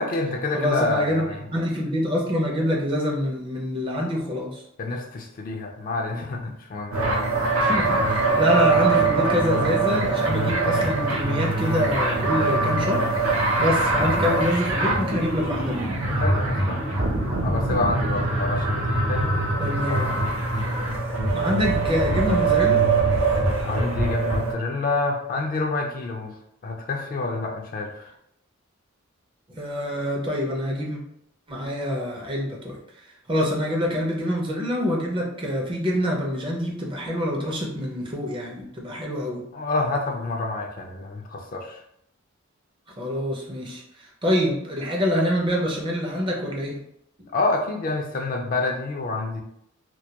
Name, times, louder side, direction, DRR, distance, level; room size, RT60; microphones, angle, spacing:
voice 1, 0.0-1.4 4.8-7.2 16.2-16.8 17.4-20.2 23.6-26.4 26.6-28.1 39.5-41.8 47.3-49.4, left 3 dB, 40° left, 1 dB, 0.3 m, -28 dB
voice 2, 0.5-1.3 1.5-4.6 7.6-15.9 19.6-20.2 21.3-22.8 29.6-31.0 31.5-32.8 33.3-39.4 43.0-46.8, left 1 dB, 25° right, -1 dB, 0.5 m, -26 dB
sound 1, 6.9-24.5, right 3 dB, 75° right, 0.6 m, -23 dB
2.2 x 2.1 x 2.7 m, 0.75 s
head